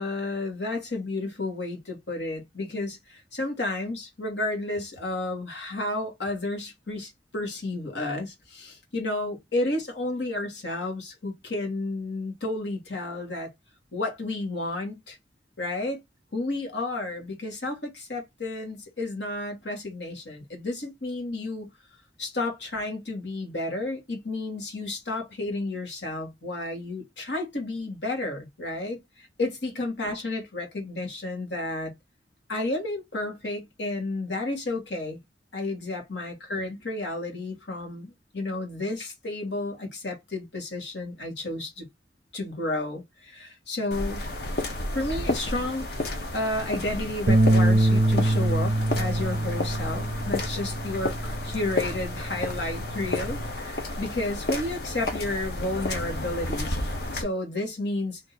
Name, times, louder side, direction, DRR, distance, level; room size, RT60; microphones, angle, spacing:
voice 1, 0.0-13.5 13.9-15.2 15.6-16.0 16.3-21.7 22.2-31.9 32.5-35.2 35.5-41.8 42.3-44.3 44.9-56.8 57.1-58.2, left 2 dB, 85° left, 1.7 m, -32 dB
sound 1, 43.9-57.2, left 2 dB, 65° left, 1.1 m, -32 dB
sound 2, 47.3-53.5, right 1 dB, 40° right, 0.5 m, -25 dB
3.6 x 2.7 x 4.2 m
head